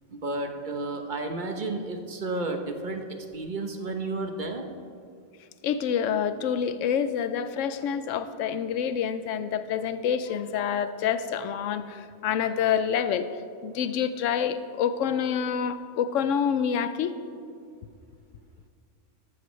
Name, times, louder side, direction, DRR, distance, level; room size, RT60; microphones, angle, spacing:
voice 1, 0.1-3.0 3.3-4.7, right 2 dB, 45° right, 4 dB, 1.0 m, -32 dB
voice 2, 5.6-13.3 13.6-17.1, left 8 dB, 85° left, 12 dB, 1.0 m, -27 dB
13.5 x 13.0 x 3.2 m, 2.2 s
omnidirectional pair, 1.3 m